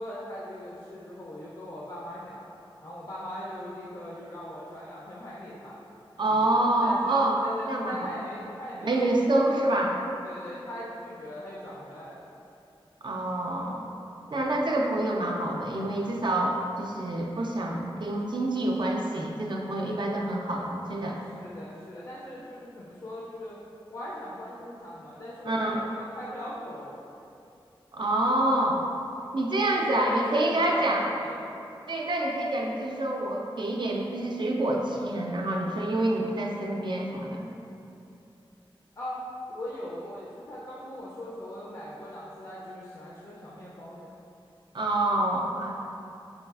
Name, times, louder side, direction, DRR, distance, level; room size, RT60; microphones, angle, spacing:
voice 1, 0.0-2.4 2.8-5.8 6.3-9.4 10.2-12.3 14.3-14.5 21.4-23.6 23.9-27.0 29.7-31.4 39.0-39.2 39.5-44.1, left 1 dB, 45° left, -7 dB, 0.4 m, -40 dB
voice 2, 6.2-7.4 7.7-8.1 8.8-10.0 13.0-13.9 14.3-21.2 25.5-25.8 27.9-28.8 29.3-31.0 31.9-37.5 44.7-45.8, right 1 dB, 55° right, -1 dB, 0.4 m, -27 dB
4.6 x 2.3 x 2.3 m, 2.8 s
wide cardioid pair, 60°, 9 cm